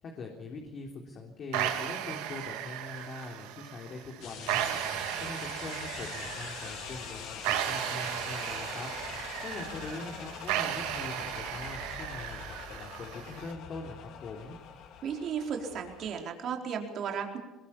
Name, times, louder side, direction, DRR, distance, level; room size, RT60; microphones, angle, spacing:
voice 1, 0.0-9.1 9.4-14.6, left 3 dB, 50° left, 1 dB, 3.6 m, -43 dB
sound 1, 1.5-13.5, right 11 dB, 80° right, 2.4 m, -36 dB
sound 2, 4.2-16.2, left 8 dB, 70° left, 2.7 m, -44 dB
voice 2, 15.0-17.4, right 7 dB, 55° right, 2 dB, 4.2 m, -34 dB
22.5 x 21.0 x 7.3 m, 1.0 s
supercardioid pair, 85°, 0 cm